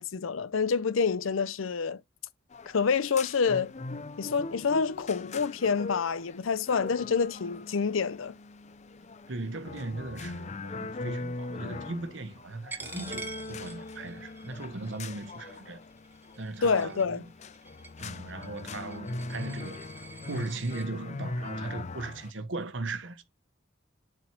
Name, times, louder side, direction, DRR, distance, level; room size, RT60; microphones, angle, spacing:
voice 1, 0.0-2.0 2.7-3.7 4.2-8.4 16.6-17.2, left 5 dB, 90° left, 0.6 m, -27 dB
sound 1, 2.5-22.3, left 2 dB, 35° left, 0.5 m, -40 dB
voice 2, 9.3-15.8 16.4-17.3 18.0-19.8 20.3-23.2, right 2 dB, 70° right, 1.1 m, -38 dB
Coin (dropping), 12.7-20.9, right 4 dB, 10° right, 1.0 m, -47 dB
7.7 x 4.5 x 4.3 m
head